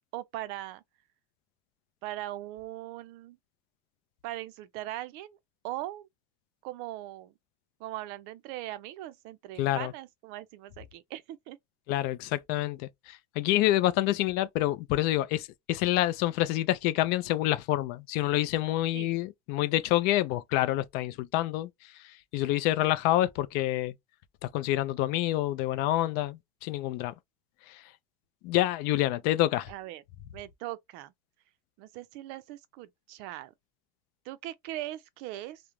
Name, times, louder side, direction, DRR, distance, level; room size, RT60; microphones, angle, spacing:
voice 1, 0.1-0.8 2.0-3.4 4.2-5.4 5.6-6.1 6.6-7.3 7.8-11.6 18.9-19.1 29.7-30.0 30.3-31.1 31.8-33.5 34.3-35.6, right 15 dB, 55° right, 0.4 m, -40 dB
voice 2, 9.6-9.9 11.9-21.7 22.3-23.9 24.4-27.1 28.4-29.7, left 15 dB, 55° left, 0.4 m, -27 dB
2.4 x 2.1 x 3.0 m
supercardioid pair, 130°, 20 cm